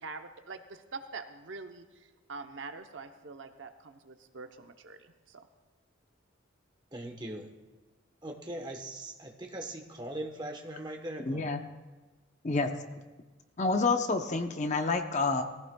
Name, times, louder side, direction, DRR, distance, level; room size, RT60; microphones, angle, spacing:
voice 1, 0.0-5.4, right 4 dB, 65° right, 7 dB, 0.8 m, -45 dB
voice 2, 6.9-7.5 8.2-11.6, right 1 dB, 20° right, 3 dB, 1.1 m, -40 dB
voice 3, 11.3-11.6 12.4-12.7 13.6-15.4, left 3 dB, 35° left, 6 dB, 0.7 m, -28 dB
19.5 x 15.0 x 2.3 m, 1.2 s
head